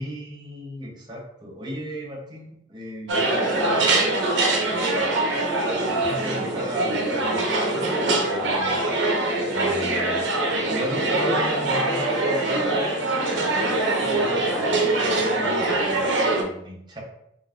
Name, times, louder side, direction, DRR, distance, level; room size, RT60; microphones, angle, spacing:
voice 1, 0.0-3.8 4.5-5.1 5.7-8.9 9.5-17.0, equal, 20° right, -2 dB, 0.8 m, -35 dB
sound 1, 3.1-16.4, right 2 dB, 70° right, 0.8 m, -23 dB
5.2 x 2.6 x 2.5 m, 0.77 s
head